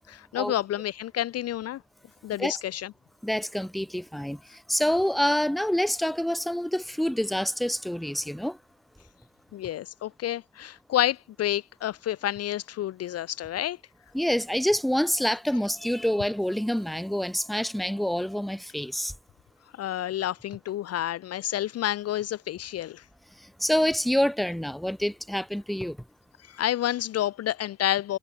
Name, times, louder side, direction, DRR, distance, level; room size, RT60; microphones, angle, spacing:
voice 1, 0.1-1.8 2.2-2.9 9.5-13.8 19.8-23.0 26.5-28.2, left 12 dB, 55° left, 0.5 m, -29 dB
voice 2, 3.2-8.6 14.1-19.1 23.6-26.0, equal, ahead, 0.9 m, -27 dB
cardioid pair, 90°, 30 cm